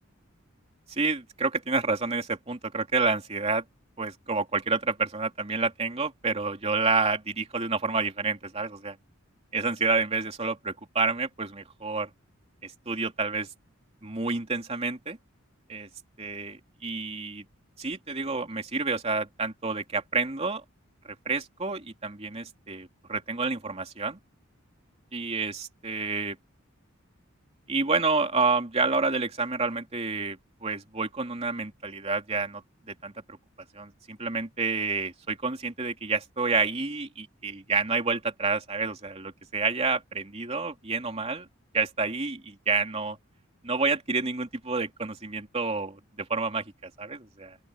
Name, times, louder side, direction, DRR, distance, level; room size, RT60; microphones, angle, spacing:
voice 1, 0.9-3.6 4.0-9.0 9.5-12.1 12.6-13.5 14.0-15.2 15.7-15.9 16.2-17.4 17.8-20.6 21.2-24.2 25.1-26.4 27.7-32.6 32.9-33.1 33.7-41.5 41.7-43.2 43.6-47.6, right 4 dB, 30° right, 3.0 m, -29 dB
open air
head